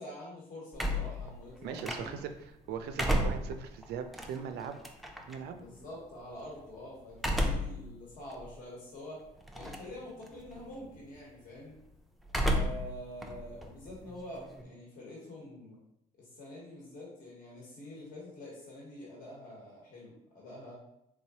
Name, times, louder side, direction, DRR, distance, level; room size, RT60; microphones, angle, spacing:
voice 1, 0.0-2.1 5.5-9.2 9.5-11.8 12.4-15.8 16.2-20.7, left 1 dB, 55° left, -4 dB, 1.2 m, -46 dB
sound 1, 0.7-2.4 2.8-5.4 7.1-7.8 8.3-8.4 9.5-10.0 10.3-10.7 12.3-12.9 13.2-14.6, equal, ahead, 0.4 m, -32 dB
voice 2, 1.6-2.3 2.7-4.8 5.3-5.6, right 7 dB, 75° right, 8 dB, 0.4 m, -39 dB
3.6 x 3.1 x 2.8 m, 0.80 s
cardioid pair, 110°, 17 cm